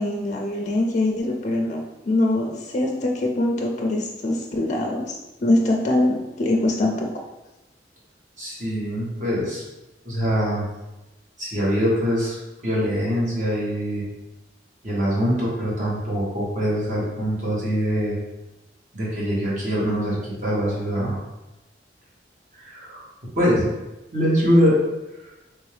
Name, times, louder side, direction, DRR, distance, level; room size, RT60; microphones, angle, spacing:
voice 1, 0.0-7.1, left 1 dB, 40° left, 1 dB, 0.4 m, -23 dB
voice 2, 8.4-9.6 10.0-10.6 11.4-12.4 12.6-14.0 14.8-18.1 18.9-21.2 22.6-23.0 23.4-23.7 24.1-24.8, equal, 45° right, -6 dB, 1.2 m, -23 dB
3.4 x 2.6 x 3.2 m, 0.99 s
head